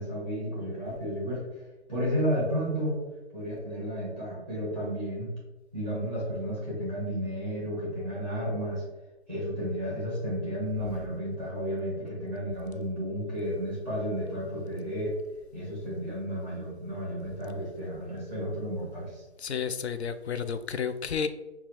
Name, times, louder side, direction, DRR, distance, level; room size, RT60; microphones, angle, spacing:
voice 1, 0.0-1.5 1.9-3.0 3.3-5.3 5.7-8.8 9.3-15.2 15.5-19.2, equal, 10° left, -6 dB, 0.8 m, -32 dB
voice 2, 19.4-21.3, left 6 dB, 70° left, 11 dB, 0.5 m, -31 dB
5.8 x 2.3 x 3.0 m, 1.1 s
hypercardioid pair, 170°, 33 cm